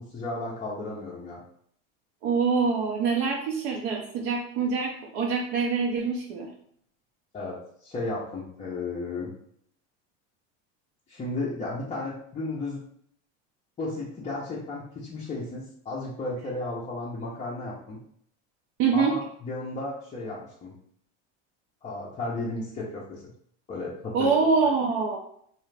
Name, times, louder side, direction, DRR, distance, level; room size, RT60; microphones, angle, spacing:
voice 1, 0.0-1.4 7.3-9.3 11.1-12.8 13.8-18.0 18.9-20.7 21.8-23.2 23.7-24.3, left 2 dB, 20° left, -7 dB, 0.5 m, -34 dB
voice 2, 2.2-6.5 18.8-19.2 24.1-25.2, right 5 dB, 55° right, -1 dB, 0.5 m, -25 dB
2.5 x 2.4 x 3.1 m, 0.66 s
supercardioid pair, 130°, 36 cm